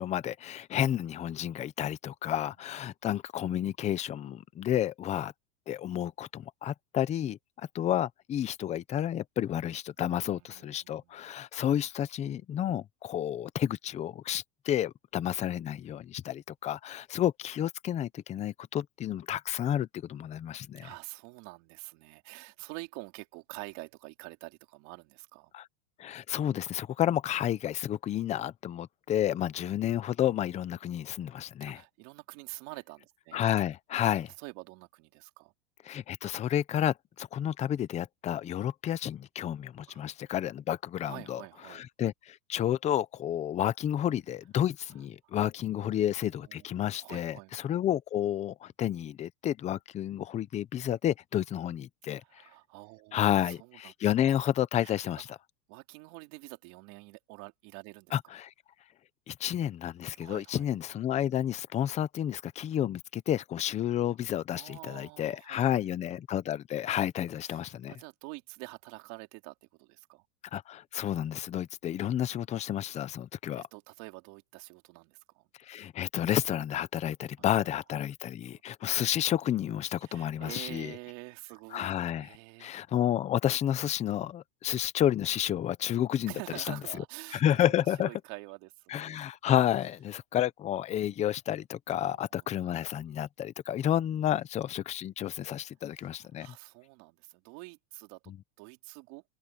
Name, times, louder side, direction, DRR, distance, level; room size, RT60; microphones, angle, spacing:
voice 1, 0.0-5.3 5.7-20.9 25.5-25.7 26.0-31.8 33.3-34.3 35.9-41.4 41.7-52.2 53.1-55.4 58.1-58.5 59.3-67.9 70.5-73.6 75.7-80.9 81.7-82.3 82.6-86.8 87.3-88.1 88.9-96.5 98.3-98.4, left 11 dB, 15° left, 0.5 m, -31 dB
voice 2, 10.0-11.3 20.8-25.5 31.6-33.4 34.4-35.5 39.9-40.1 41.0-41.9 45.2-45.3 45.8-46.1 46.4-47.5 52.2-53.9 54.8-55.3 55.7-58.1 60.1-60.7 64.5-65.9 67.4-70.2 73.6-75.5 77.4-77.7 78.5-78.6 80.0-82.7 86.3-89.2 92.0-92.5 94.3-94.4 95.9-99.2, right 26 dB, 50° right, 3.1 m, -47 dB
open air
supercardioid pair, 150°, 46 cm